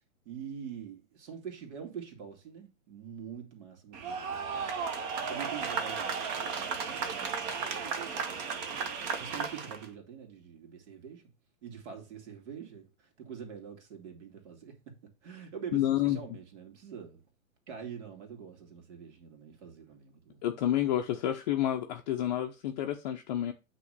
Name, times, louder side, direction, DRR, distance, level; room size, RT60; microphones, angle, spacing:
voice 1, 0.2-4.7 5.2-8.5 9.1-11.3 11.6-14.9 15.2-17.2 17.7-20.5, right 7 dB, 50° right, 2.6 m, -45 dB
sound 1, 3.9-9.9, right 5 dB, 30° right, 1.0 m, -34 dB
voice 2, 15.7-16.2 20.4-23.5, left 12 dB, 30° left, 0.7 m, -29 dB
8.3 x 3.2 x 6.5 m
figure-of-eight pair, 115°, 42 cm